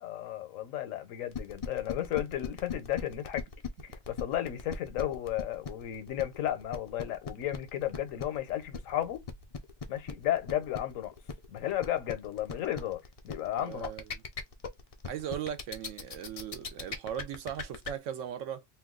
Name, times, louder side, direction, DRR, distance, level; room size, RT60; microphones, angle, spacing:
voice 1, 0.0-3.5 3.8-9.2 9.9-11.1 11.5-13.0 13.2-13.9, left 12 dB, 80° left, 1.1 m, -33 dB
sound 1, 1.3-17.9, left 6 dB, 65° left, 0.3 m, -39 dB
voice 2, 13.6-14.2 15.0-18.6, right 9 dB, 75° right, 0.9 m, -38 dB
2.6 x 2.3 x 3.6 m
omnidirectional pair, 1.3 m